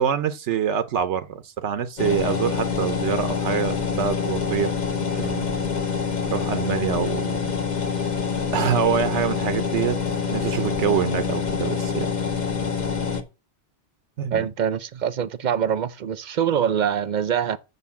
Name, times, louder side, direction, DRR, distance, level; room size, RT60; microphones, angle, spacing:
voice 1, 0.0-5.6 6.3-7.5 8.5-10.0 10.3-12.1 14.2-14.5, right 8 dB, 80° right, 1.0 m, -26 dB
sound 1, 2.0-13.2, left 6 dB, 40° left, 1.2 m, -26 dB
voice 2, 14.3-17.6, right 8 dB, 50° right, 0.6 m, -24 dB
6.7 x 6.7 x 7.0 m
omnidirectional pair, 1.2 m